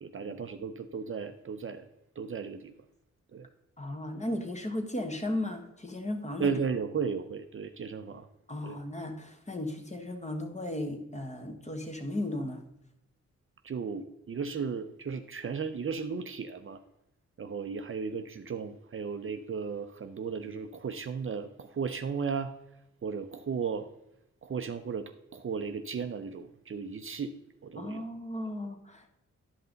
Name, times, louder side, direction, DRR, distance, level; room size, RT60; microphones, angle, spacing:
voice 1, 0.0-1.9 2.2-2.7 3.3-3.5 6.4-8.3 8.6-8.8 13.6-16.8 17.4-22.5 23.0-23.9 24.4-27.3 27.6-28.0, right 5 dB, 45° right, 9 dB, 0.5 m, -35 dB
voice 2, 3.8-6.5 8.5-12.6 27.8-29.2, left 1 dB, 25° left, 4 dB, 1.4 m, -35 dB
10.5 x 5.5 x 3.9 m, 0.84 s
cardioid pair, 70°, 29 cm